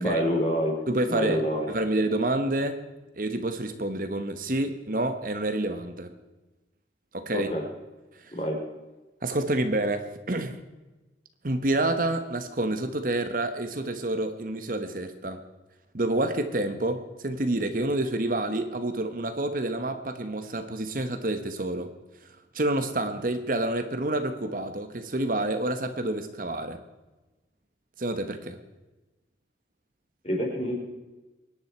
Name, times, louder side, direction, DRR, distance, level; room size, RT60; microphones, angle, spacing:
voice 1, 0.0-0.8 1.1-1.7 7.3-7.6 8.3-8.6 30.2-30.8, equal, 35° left, 1 dB, 3.8 m, -27 dB
voice 2, 0.9-2.9 3.1-6.1 7.1-7.5 8.2-8.3 9.2-10.6 11.4-15.4 15.9-21.9 22.2-26.8 28.0-28.6, right 1 dB, 50° right, 8 dB, 1.1 m, -28 dB
24.0 x 10.0 x 4.5 m, 1.1 s
head